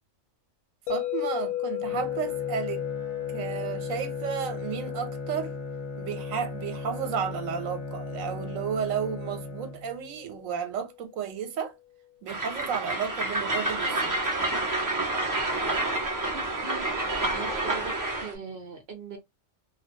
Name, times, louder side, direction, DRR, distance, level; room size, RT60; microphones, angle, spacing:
sound 1, 0.9-10.9, left 13 dB, 85° left, 1.0 m, -36 dB
voice 1, 0.9-2.8 3.3-5.5 6.0-11.7 12.2-14.1, right 7 dB, 80° right, 1.1 m, -33 dB
Bowed string instrument, 1.8-10.2, left 1 dB, 40° left, 0.8 m, -38 dB
Train, 12.3-18.3, right 2 dB, 25° right, 0.4 m, -28 dB
voice 2, 16.3-19.2, right 5 dB, 60° right, 0.8 m, -41 dB
2.4 x 2.2 x 2.6 m
omnidirectional pair, 1.4 m